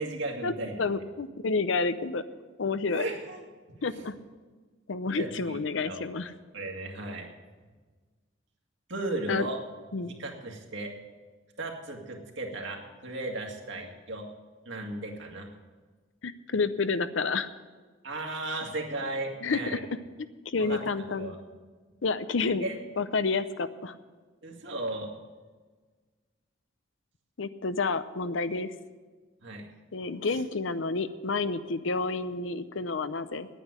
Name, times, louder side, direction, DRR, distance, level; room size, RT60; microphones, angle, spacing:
voice 1, 0.0-0.9 2.9-3.4 3.7-4.1 5.1-5.6 5.8-6.1 6.5-7.3 8.9-9.6 10.0-10.9 11.6-14.3 14.7-15.5 18.0-19.8 20.6-20.8 21.2-21.4 22.6-22.8 24.4-25.1 29.4-29.7, right 2 dB, 60° right, 1 dB, 2.1 m, -35 dB
voice 2, 0.8-2.2 2.6-3.0 3.8-4.1 4.9-6.3 9.3-9.5 9.9-10.2 16.2-17.5 19.4-19.8 20.2-21.4 22.0-22.7 23.0-23.9 27.4-28.7 29.9-33.5, left 4 dB, 70° left, 12 dB, 0.6 m, -29 dB
10.0 x 9.2 x 9.6 m, 1.4 s
head